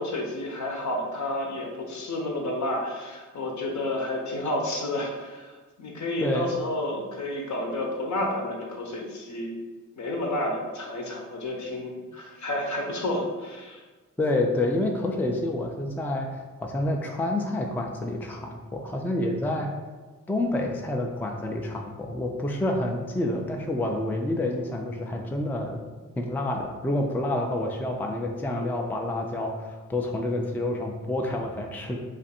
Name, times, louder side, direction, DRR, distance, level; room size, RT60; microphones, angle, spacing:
voice 1, 0.0-9.5 10.0-13.8, left 1 dB, 60° left, 0 dB, 0.8 m, -30 dB
voice 2, 6.2-6.5 14.2-19.7 20.3-25.8 26.2-32.0, left 1 dB, 5° left, 2 dB, 0.4 m, -28 dB
2.5 x 2.5 x 4.1 m, 1.3 s
cardioid pair, 60°, 33 cm